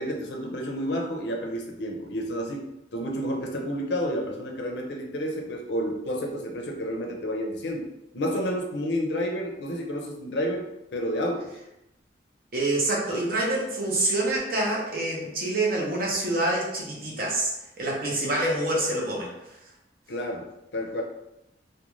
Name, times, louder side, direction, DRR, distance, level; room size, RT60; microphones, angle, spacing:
voice 1, 0.0-7.9 8.1-11.6 20.1-21.0, equal, 70° left, 1 dB, 0.5 m, -30 dB
voice 2, 12.5-17.5 17.8-19.3, right 2 dB, 50° right, -3 dB, 0.6 m, -26 dB
2.4 x 2.1 x 3.0 m, 0.89 s
head